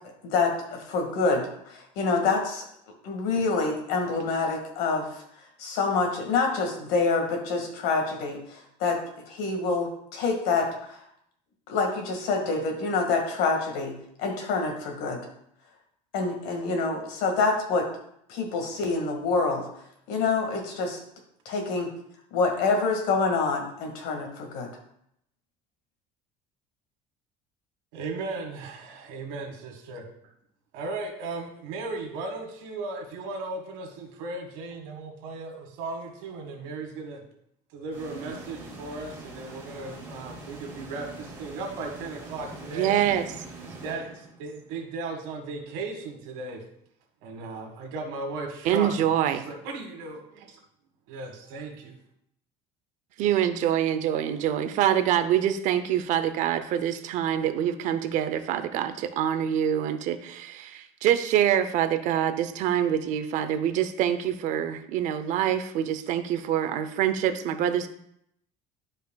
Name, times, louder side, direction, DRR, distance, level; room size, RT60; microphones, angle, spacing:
voice 1, 0.2-2.6 3.0-5.2 5.6-11.0 11.7-15.3 16.1-17.9 18.3-19.7 20.1-21.0 21.5-21.9 22.3-24.7, left 4 dB, 75° left, 3 dB, 1.9 m, -27 dB
voice 2, 27.9-30.0 30.7-37.2 37.7-43.0 43.6-46.6 47.2-49.1 49.5-50.6 51.1-52.0, right 3 dB, 85° right, 2 dB, 1.8 m, -36 dB
sound 1, 37.9-44.7, right 2 dB, 15° right, 1.9 m, -43 dB
voice 3, 42.7-43.3 48.6-49.4 53.2-67.9, right 10 dB, 55° right, 10 dB, 0.6 m, -25 dB
11.5 x 5.0 x 2.3 m, 0.73 s
cardioid pair, 155°, 15 cm